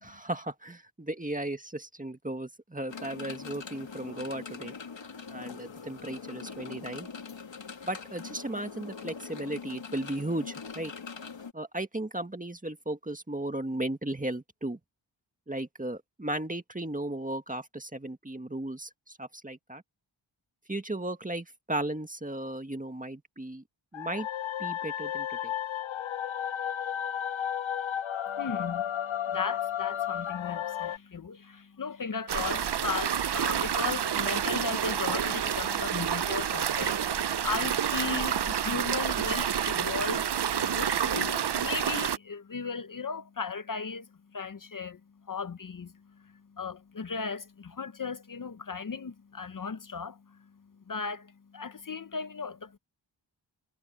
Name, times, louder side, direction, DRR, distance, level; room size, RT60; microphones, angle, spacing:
voice 1, 0.0-4.7 5.3-7.1 7.8-10.9 11.5-14.8 15.5-19.8 20.7-23.6 23.9-24.3 24.6-25.5, right 1 dB, 15° right, 1.8 m, -35 dB
sound 1, 2.9-11.5, left 5 dB, 75° left, 2.6 m, -42 dB
sound 2, 23.9-31.0, left 10 dB, 90° left, 0.7 m, -33 dB
voice 2, 28.3-28.8 29.3-45.0 45.3-50.4 50.9-52.8, left 5 dB, 45° left, 0.8 m, -36 dB
sound 3, 32.3-42.2, right 9 dB, 60° right, 0.7 m, -29 dB
wide cardioid pair, 100°, 46 cm